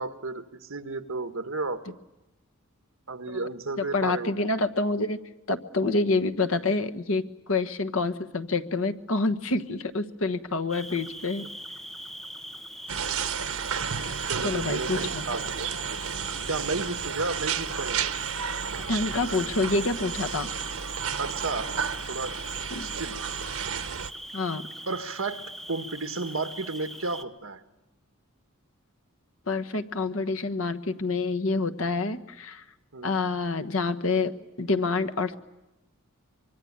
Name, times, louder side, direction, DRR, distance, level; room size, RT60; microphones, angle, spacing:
voice 1, 0.0-1.8 3.1-4.3 14.3-15.7 16.4-18.0 21.2-21.7 22.1-22.3 22.8-23.2 24.9-27.6 32.9-33.1, right 3 dB, 70° right, 8 dB, 1.5 m, -33 dB
voice 2, 3.8-5.2 5.5-11.4 14.4-15.3 18.9-20.5 22.7-22.9 24.3-24.6 29.5-32.6 33.0-35.4, left 3 dB, 70° left, 10 dB, 1.3 m, -27 dB
Cricket, 10.7-27.2, equal, ahead, 1.0 m, -41 dB
sound 1, 12.9-24.1, right 7 dB, 90° right, 1.1 m, -32 dB
25.0 x 23.5 x 8.8 m, 0.99 s
head